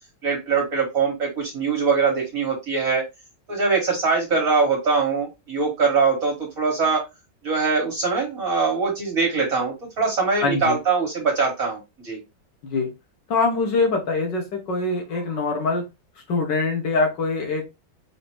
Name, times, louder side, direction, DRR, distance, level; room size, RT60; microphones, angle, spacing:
voice 1, 0.2-3.1 3.5-7.0 7.4-12.2, right 4 dB, 50° right, -1 dB, 1.7 m, -22 dB
voice 2, 10.4-10.8 12.6-12.9 13.3-15.8 16.3-17.7, left 3 dB, 80° left, 2 dB, 1.8 m, -23 dB
4.9 x 2.8 x 3.1 m, 0.23 s
omnidirectional pair, 1.9 m